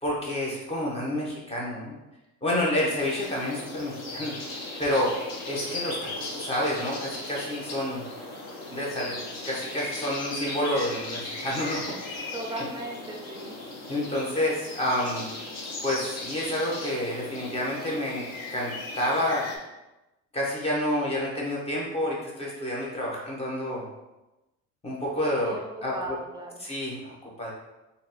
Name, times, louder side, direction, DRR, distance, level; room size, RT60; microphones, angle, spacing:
voice 1, 0.0-1.9 2.4-5.1 5.4-8.0 8.7-9.2 9.4-12.2 13.9-15.3 15.8-18.2 18.5-19.5 20.3-23.8 24.8-25.9 26.6-27.5, left 1 dB, 20° left, -4 dB, 1.1 m, -29 dB
sound 1, 3.0-19.6, left 2 dB, 50° left, 1.0 m, -37 dB
voice 2, 12.3-13.6 25.4-26.6, right 2 dB, 10° right, 1 dB, 0.6 m, -37 dB
3.1 x 2.6 x 4.2 m, 1.0 s
cardioid pair, 120°, 34 cm